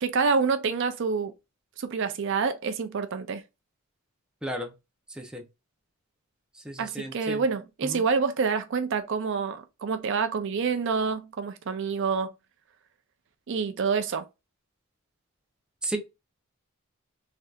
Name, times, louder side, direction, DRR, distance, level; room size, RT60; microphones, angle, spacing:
voice 1, 0.0-1.3 1.8-3.4 6.8-12.3 13.5-14.3, right 5 dB, 55° right, 0.4 m, -27 dB
voice 2, 4.4-4.7 5.1-5.4 6.5-7.4 7.8-8.0 15.8-16.0, right 1 dB, 5° right, 0.6 m, -34 dB
3.3 x 2.7 x 2.3 m
head